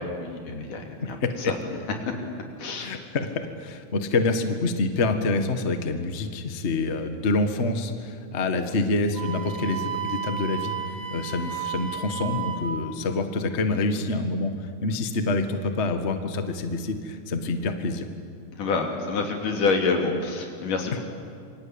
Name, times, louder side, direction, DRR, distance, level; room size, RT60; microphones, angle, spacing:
voice 1, 0.0-1.5 2.1-2.2 2.6-2.9 18.5-21.0, left 4 dB, 80° left, 2 dB, 4.6 m, -27 dB
voice 2, 1.2-1.5 2.8-10.7 11.1-18.1, left 3 dB, 35° left, 7 dB, 1.2 m, -27 dB
Wind instrument woodwind instrument, 9.1-12.7, right 8 dB, 45° right, 3.6 m, -33 dB
28.0 x 24.0 x 8.8 m, 2.3 s
omnidirectional pair, 3.6 m